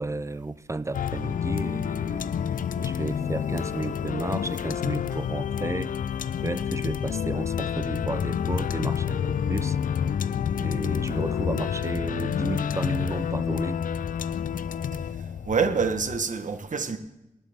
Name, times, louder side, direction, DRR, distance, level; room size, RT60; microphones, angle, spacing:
voice 1, 0.0-2.3 2.8-5.9 6.4-9.8 10.6-13.8, right 2 dB, 20° right, 0.5 m, -32 dB
sound 1, 0.9-16.2, left 8 dB, 85° left, 0.4 m, -29 dB
voice 2, 15.5-17.0, right 5 dB, 70° right, 1.2 m, -26 dB
18.5 x 12.0 x 3.6 m
wide cardioid pair, 70°, 14 cm